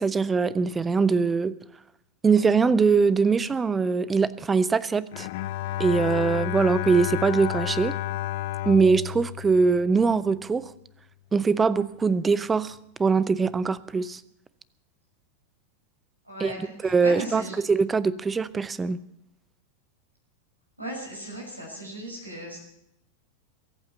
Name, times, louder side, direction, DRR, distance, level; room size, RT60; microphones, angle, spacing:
voice 1, 0.0-1.5 2.2-5.3 5.8-7.9 8.7-10.6 11.3-12.7 13.0-14.2 16.4-17.4 17.7-19.0, right 5 dB, 15° right, 19 dB, 0.7 m, -22 dB
Bowed string instrument, 5.1-10.4, left 14 dB, 50° left, 0.5 m, -31 dB
voice 2, 16.3-17.6 20.8-22.6, equal, 85° right, -1 dB, 6.2 m, -37 dB
22.5 x 8.7 x 6.9 m, 0.78 s
figure-of-eight pair, 90°, 0 cm